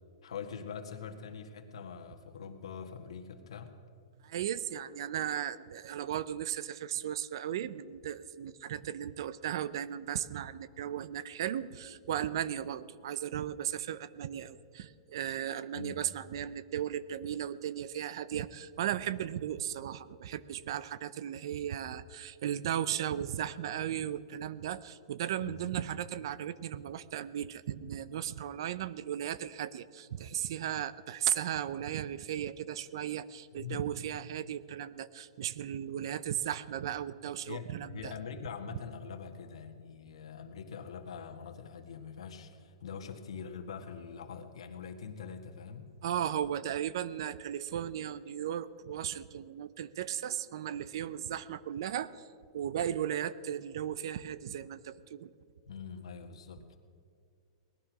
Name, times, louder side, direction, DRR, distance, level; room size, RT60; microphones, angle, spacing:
voice 1, 0.2-3.7 15.7-16.0 25.4-25.6 33.5-33.9 37.4-45.9 55.7-56.8, left 6 dB, 90° left, 4 dB, 1.7 m, -43 dB
voice 2, 4.2-38.1 46.0-52.3 52.5-55.3, right 10 dB, 50° right, 18 dB, 0.6 m, -36 dB
18.5 x 12.0 x 6.1 m, 2.3 s
supercardioid pair, 175°, 3 cm